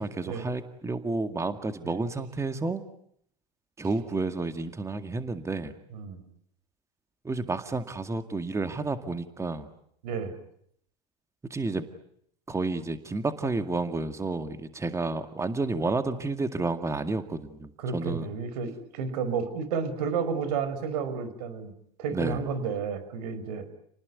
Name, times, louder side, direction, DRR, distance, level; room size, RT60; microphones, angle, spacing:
voice 1, 0.0-2.8 3.8-5.7 7.2-9.7 11.4-11.9 12.5-18.3 22.1-22.4, right 3 dB, 15° right, 9 dB, 2.1 m, -31 dB
voice 2, 10.0-10.4 17.8-21.7 22.0-23.7, right 5 dB, 75° right, 12 dB, 5.4 m, -31 dB
29.5 x 19.5 x 9.8 m, 0.70 s
hypercardioid pair, 105°, 21 cm